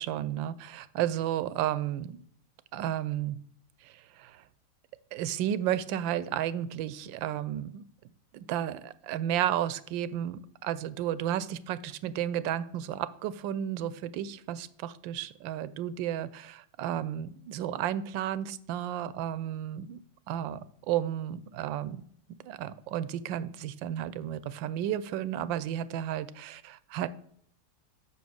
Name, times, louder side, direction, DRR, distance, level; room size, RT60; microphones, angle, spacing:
voice 1, 0.0-2.2 2.7-3.4 3.8-4.4 5.1-7.8 8.3-20.0 20.3-20.6 20.9-22.0 22.4-27.1, right 11 dB, 80° right, 16 dB, 1.3 m, -32 dB
7.0 x 6.3 x 6.3 m, 0.63 s
omnidirectional pair, 2.0 m